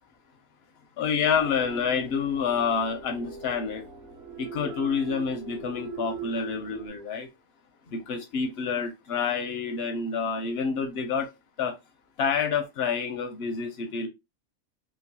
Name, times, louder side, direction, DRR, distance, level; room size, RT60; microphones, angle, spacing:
voice 1, 1.0-3.8 4.4-7.3 7.9-11.3 11.6-11.8 12.2-14.1, left 6 dB, 65° left, 0.6 m, -28 dB
sound 1, 1.3-6.9, right 5 dB, 55° right, 0.8 m, -40 dB
3.0 x 2.3 x 2.7 m
omnidirectional pair, 1.5 m